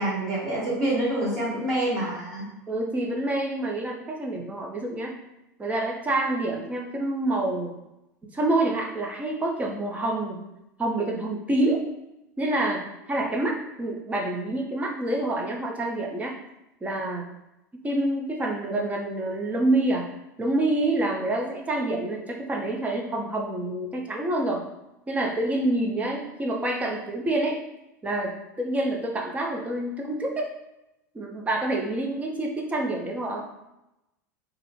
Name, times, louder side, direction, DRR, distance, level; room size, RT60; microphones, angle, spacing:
voice 1, 0.0-2.5, right 1 dB, 35° right, -8 dB, 0.9 m, -26 dB
voice 2, 2.7-5.2 5.6-7.8 8.2-10.4 10.8-11.8 12.4-16.4 16.8-17.2 17.8-20.1 20.4-24.7 25.1-27.6 28.0-30.3 31.1-33.5, right 2 dB, 15° right, 0 dB, 0.4 m, -27 dB
2.4 x 2.0 x 2.9 m, 0.91 s
figure-of-eight pair, 85°, 10 cm